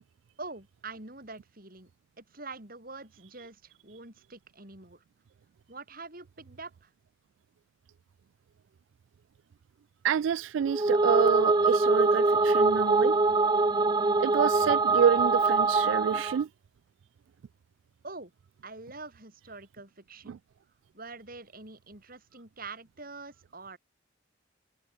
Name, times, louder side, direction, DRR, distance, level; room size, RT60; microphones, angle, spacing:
voice 1, 0.4-1.9 2.2-5.0 5.7-6.9 18.0-18.3 18.6-20.4 20.9-23.8, right 3 dB, 45° right, 6.0 m, -45 dB
voice 2, 10.0-13.2 14.2-16.5 20.3-20.4, right 8 dB, 75° right, 0.3 m, -28 dB
sound 1, 10.7-16.4, right 3 dB, 20° right, 0.6 m, -24 dB
head